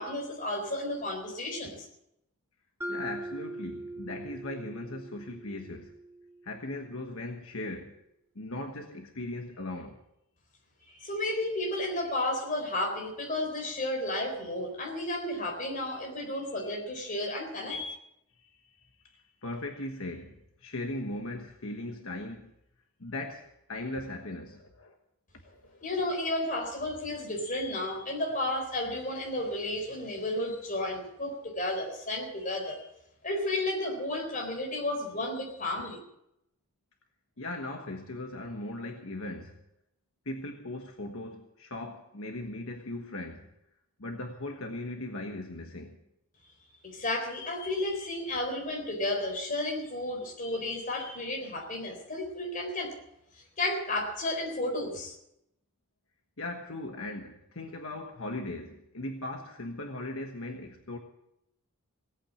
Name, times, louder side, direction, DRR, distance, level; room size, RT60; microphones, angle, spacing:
voice 1, 0.0-1.9 10.9-17.9 25.8-32.9 33.2-36.0 46.8-53.0 53.6-55.2, left 1 dB, 35° left, 4.0 m, -32 dB
Mallet percussion, 2.8-6.8, right 1 dB, 10° right, 0.6 m, -41 dB
voice 2, 2.9-5.9 6.4-7.9 8.3-10.0 18.4-22.5 23.0-24.9 25.4-25.9 37.4-39.6 40.2-43.5 44.0-46.0 56.4-61.0, left 2 dB, 70° left, 1.3 m, -39 dB
18.0 x 8.8 x 8.5 m
head